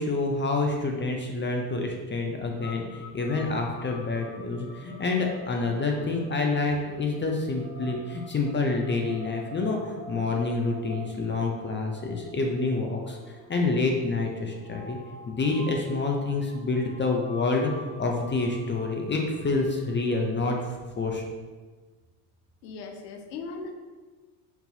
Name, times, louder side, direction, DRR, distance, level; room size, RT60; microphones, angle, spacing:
voice 1, 0.0-15.0 15.3-17.7 18.0-21.2, left 3 dB, 25° left, 1 dB, 0.6 m, -28 dB
sound 1, 2.6-20.7, left 1 dB, 50° left, 1.4 m, -46 dB
voice 2, 22.6-23.7, left 4 dB, 85° left, 4 dB, 0.7 m, -38 dB
4.6 x 3.9 x 2.7 m, 1.3 s
hypercardioid pair, 70°, 49 cm